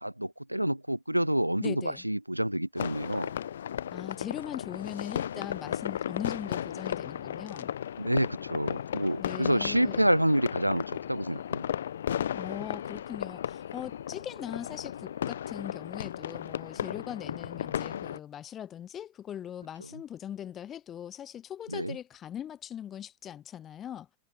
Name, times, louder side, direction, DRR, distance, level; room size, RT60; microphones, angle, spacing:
voice 1, 0.0-3.3 8.0-11.6 21.7-22.0, right 1 dB, 90° right, 0.3 m, -28 dB
voice 2, 1.6-2.0 3.9-7.7 9.2-10.1 12.3-24.1, left 10 dB, 25° left, 0.8 m, -40 dB
sound 1, 2.8-18.2, left 9 dB, 65° left, 1.0 m, -35 dB
figure-of-eight pair, 90°, 0 cm